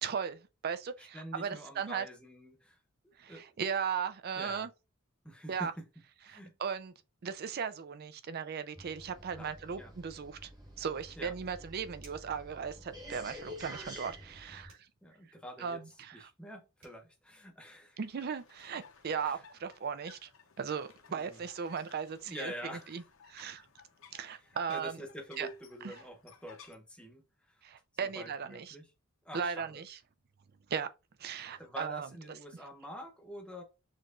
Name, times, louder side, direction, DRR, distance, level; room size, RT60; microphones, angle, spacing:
voice 1, 0.0-2.1 3.2-4.7 5.5-5.7 6.3-6.9 7.2-10.5 10.8-14.8 15.6-16.3 18.0-20.3 20.6-23.0 23.3-23.6 24.1-25.0 25.4-25.5 25.8-25.9 27.6-28.8 29.3-30.0 30.7-30.9 31.2-32.1, right 6 dB, 45° right, 0.4 m, -37 dB
voice 2, 1.0-2.8 3.3-3.4 4.3-4.7 5.2-5.8 6.2-6.5 9.4-9.5 9.8-9.9 11.2-11.3 15.0-15.8 16.1-18.0 19.2-19.4 21.1-21.4 22.2-23.0 24.4-27.6 28.0-28.9 29.2-29.8 31.5-33.6, equal, 5° left, 0.9 m, -46 dB
sound 1, 8.7-14.7, equal, 15° right, 1.0 m, -49 dB
sound 2, 12.0-12.4 14.7-14.9 16.5-16.6 16.8-17.0, right 3 dB, 60° right, 3.0 m, -59 dB
sound 3, 18.0-26.7, left 6 dB, 65° left, 0.8 m, -58 dB
6.4 x 3.0 x 2.5 m
head